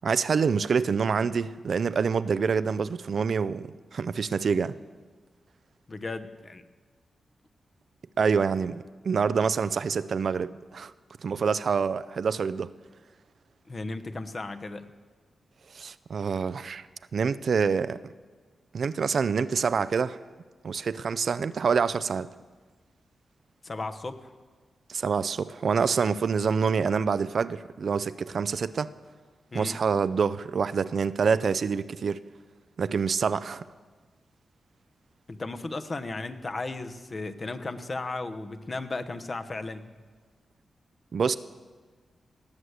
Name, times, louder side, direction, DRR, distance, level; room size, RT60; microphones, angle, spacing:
voice 1, 0.0-4.7 8.2-10.9 11.2-12.7 15.7-16.9 17.1-18.1 18.7-20.2 20.6-22.3 24.9-28.9 29.5-32.2 32.8-33.6 41.1-41.3, right 5 dB, 65° right, 0.4 m, -26 dB
voice 2, 5.9-6.6 13.7-14.9 23.6-24.3 29.5-29.8 35.3-39.9, left 3 dB, 45° left, 1.0 m, -35 dB
18.5 x 6.4 x 8.1 m
cardioid pair, 60°, 0 cm